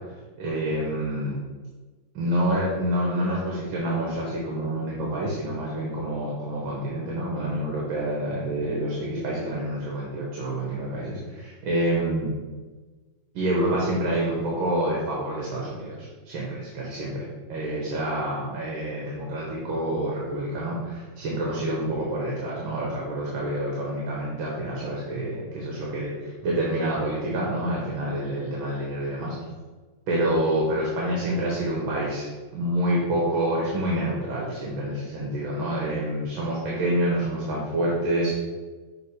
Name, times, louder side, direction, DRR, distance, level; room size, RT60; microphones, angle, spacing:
voice 1, 0.4-1.4 2.2-12.3 13.3-29.4 30.1-32.3 32.5-38.4, right 1 dB, 85° right, -4 dB, 2.1 m, -27 dB
7.0 x 3.7 x 4.9 m, 1.3 s
omnidirectional pair, 2.1 m